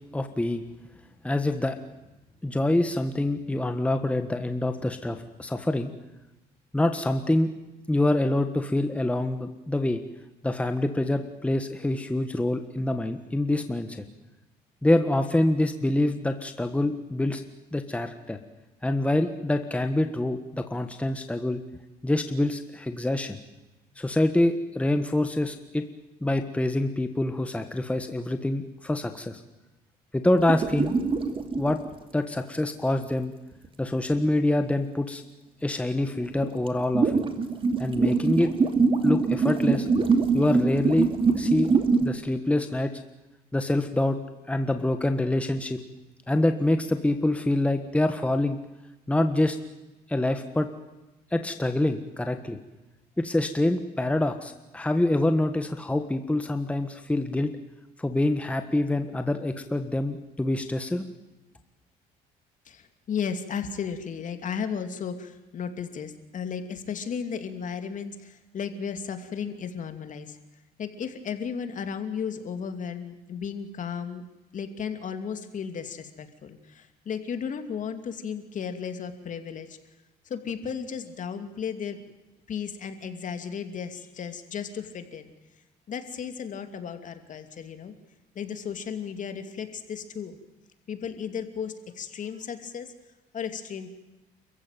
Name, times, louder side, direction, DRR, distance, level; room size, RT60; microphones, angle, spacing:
voice 1, 0.1-0.6 1.2-1.8 2.4-5.9 6.7-7.5 7.9-10.0 10.4-14.0 14.8-17.4 17.7-18.4 18.8-21.6 22.0-23.4 24.0-25.9 26.2-29.4 30.1-30.9 31.6-31.8 32.1-33.3 33.8-35.2 35.6-37.1 37.8-38.5 39.0-39.9 40.3-41.1 41.3-41.7 42.0-42.9 43.5-44.2 44.5-45.8 46.3-48.6 49.1-49.6 50.1-50.7 51.3-52.6 53.2-57.5 58.0-61.0, left 1 dB, 5° left, 7 dB, 1.5 m, -26 dB
sound 1, 30.4-31.9 33.5-33.7 35.9-36.0 36.3-42.1, right 4 dB, 30° right, 2.7 m, -23 dB
voice 2, 62.7-70.4 70.8-74.2 74.5-79.8 80.3-82.0 82.5-85.3 85.9-87.9 88.3-90.4 90.9-92.9 93.3-93.9, left 7 dB, 50° left, 8 dB, 2.7 m, -34 dB
28.5 x 15.0 x 9.2 m, 1.0 s
cardioid pair, 110°, 17 cm